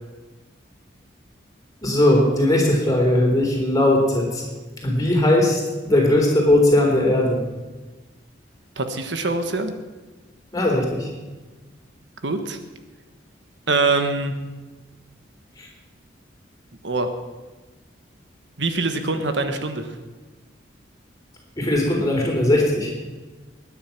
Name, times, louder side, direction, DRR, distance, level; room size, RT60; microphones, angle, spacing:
voice 1, 1.8-4.4 4.8-7.4 10.5-11.1 15.6-15.7 21.6-22.9, left 1 dB, 20° left, -1 dB, 3.8 m, -19 dB
voice 2, 8.8-9.7 12.2-12.6 13.7-14.3 16.8-17.1 18.6-19.9, right 3 dB, 70° right, 7 dB, 1.3 m, -23 dB
20.5 x 9.7 x 6.0 m, 1.2 s
head